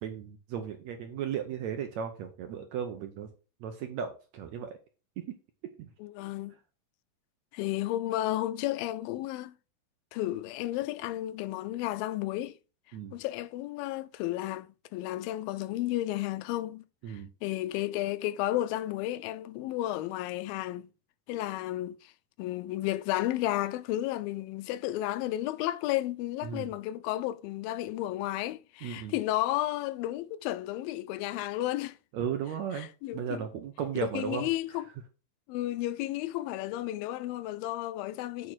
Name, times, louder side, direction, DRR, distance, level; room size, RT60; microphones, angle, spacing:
voice 1, 0.0-3.3 3.6-4.7 5.2-5.3 5.8-5.9 12.9-13.2 17.0-17.3 26.4-26.7 28.8-29.1 32.1-34.5, right 8 dB, 70° right, 1.8 m, -35 dB
voice 2, 6.0-6.5 7.5-9.5 10.1-12.6 13.1-20.9 21.3-22.1 22.4-32.0 32.8-33.4 34.0-34.9 35.5-38.5, left 15 dB, 90° left, 2.3 m, -33 dB
8.8 x 3.6 x 6.1 m
omnidirectional pair, 4.0 m